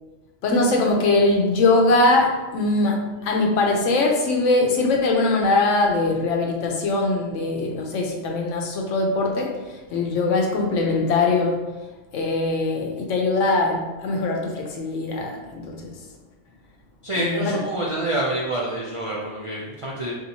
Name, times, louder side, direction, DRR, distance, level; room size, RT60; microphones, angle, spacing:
voice 1, 0.4-11.7 12.1-15.9 17.2-17.6, left 2 dB, 85° left, 1 dB, 1.0 m, -21 dB
voice 2, 17.0-20.1, right 1 dB, 60° right, -5 dB, 0.3 m, -27 dB
4.0 x 2.8 x 2.7 m, 1.2 s
omnidirectional pair, 1.2 m